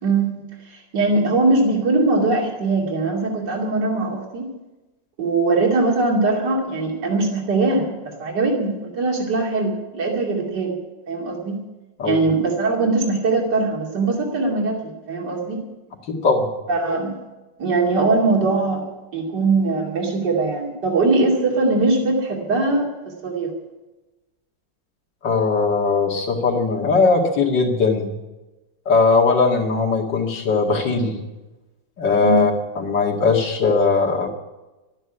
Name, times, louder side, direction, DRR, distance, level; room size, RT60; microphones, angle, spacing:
voice 1, 0.0-4.5 5.2-10.8 11.1-11.6 12.0-15.6 16.7-17.2 17.6-18.8 19.1-23.5 32.2-32.5, right 3 dB, 70° right, 0 dB, 3.1 m, -21 dB
voice 2, 16.1-16.5 25.2-28.1 28.9-31.2 32.0-32.5 32.8-34.3, left 4 dB, 75° left, 1 dB, 2.8 m, -19 dB
12.5 x 9.8 x 9.9 m, 1.1 s
omnidirectional pair, 1.9 m